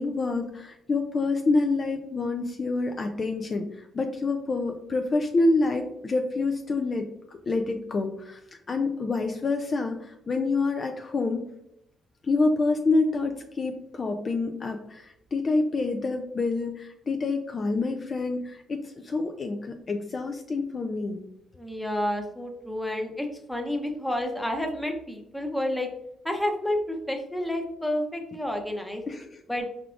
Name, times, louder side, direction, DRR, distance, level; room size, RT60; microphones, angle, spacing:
voice 1, 0.0-8.4 8.7-11.4 12.2-21.2 29.1-29.4, left 3 dB, 40° left, 4 dB, 0.4 m, -27 dB
voice 2, 21.6-25.9 26.2-29.0 29.5-29.7, left 1 dB, 5° left, 3 dB, 0.8 m, -30 dB
4.7 x 3.6 x 2.4 m, 0.80 s
cardioid pair, 90°, 0 cm